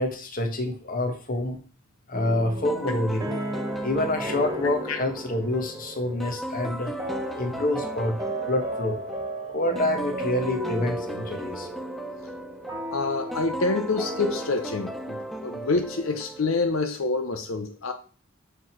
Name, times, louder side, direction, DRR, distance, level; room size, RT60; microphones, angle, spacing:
voice 1, 0.0-1.6 2.1-3.3 3.8-7.0 7.3-8.2 8.5-9.0 9.5-11.7, left 1 dB, 45° left, 5 dB, 1.3 m, -27 dB
sound 1, 2.1-16.1, right 1 dB, 15° right, 1.5 m, -36 dB
sound 2, 2.6-16.9, right 1 dB, ahead, 0.5 m, -36 dB
voice 2, 12.9-17.9, left 3 dB, 85° left, 6 dB, 0.8 m, -27 dB
6.0 x 5.1 x 4.5 m, 0.38 s
head